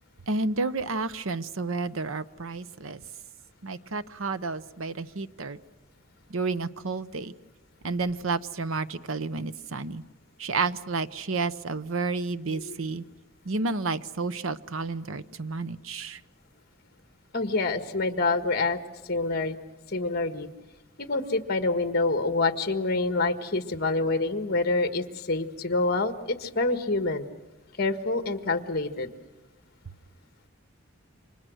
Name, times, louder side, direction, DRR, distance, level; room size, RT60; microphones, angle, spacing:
voice 1, 0.3-3.0 3.6-5.6 6.3-7.3 7.8-10.0 10.4-13.0 13.4-16.2, right 3 dB, 80° right, 14 dB, 0.9 m, -31 dB
voice 2, 12.5-12.8 17.3-18.8 19.1-19.5 19.9-20.5 21.0-27.3 27.8-29.1, left 3 dB, 50° left, 8 dB, 1.6 m, -27 dB
29.0 x 25.5 x 6.4 m, 1.1 s
head